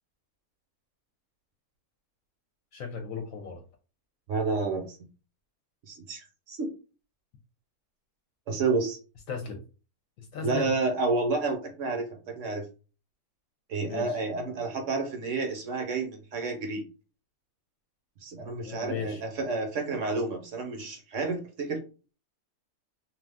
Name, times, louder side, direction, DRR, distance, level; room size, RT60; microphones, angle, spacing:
voice 1, 2.7-3.6 9.3-9.6 10.2-10.7 13.9-14.2 18.6-19.2, left 6 dB, 70° left, 3 dB, 0.9 m, -36 dB
voice 2, 4.3-5.0 5.9-6.7 8.5-9.0 10.4-12.7 13.7-16.8 18.2-21.8, right 3 dB, 65° right, 3 dB, 0.9 m, -30 dB
2.5 x 2.3 x 3.4 m, 0.34 s
omnidirectional pair, 1.5 m